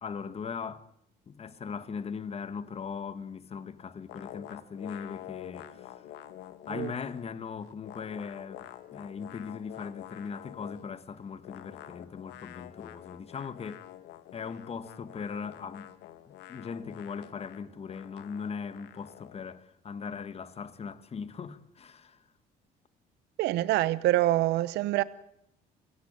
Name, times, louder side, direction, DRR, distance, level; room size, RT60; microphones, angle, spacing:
voice 1, 0.0-0.9 1.3-6.1 6.7-13.8 14.3-15.9 16.3-22.2, left 6 dB, 35° left, 1.8 m, -39 dB
sound 1, 4.1-7.4 7.6-10.9 11.4-19.5, left 12 dB, 85° left, 1.9 m, -48 dB
voice 2, 23.4-25.0, right 15 dB, 85° right, 0.9 m, -25 dB
28.5 x 17.0 x 9.0 m
cardioid pair, 110°, 17 cm